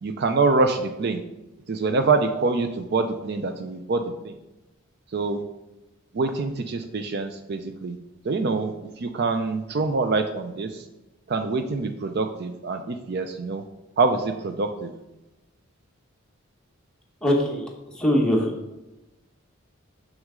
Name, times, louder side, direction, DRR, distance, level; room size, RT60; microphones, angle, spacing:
voice 1, 0.0-1.2 1.7-4.3 5.1-5.4 6.1-8.0 8.2-10.8 11.3-13.6 14.0-14.9, right 3 dB, 50° right, 7 dB, 0.4 m, -25 dB
voice 2, 17.2-18.5, equal, 5° left, -1 dB, 1.0 m, -22 dB
6.4 x 6.1 x 3.7 m, 1.0 s
head